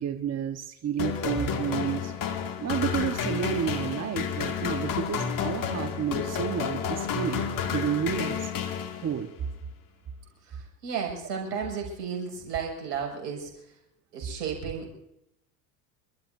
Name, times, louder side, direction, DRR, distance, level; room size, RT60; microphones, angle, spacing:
voice 1, 0.0-2.1 2.6-8.5 8.9-9.3, right 9 dB, 35° right, 6 dB, 1.4 m, -31 dB
sound 1, 1.0-9.4, left 7 dB, 45° left, 2.4 m, -30 dB
voice 2, 10.5-13.5 14.1-15.0, right 6 dB, 90° right, 1 dB, 6.8 m, -33 dB
29.5 x 13.5 x 2.7 m, 0.80 s
hypercardioid pair, 85°, 47 cm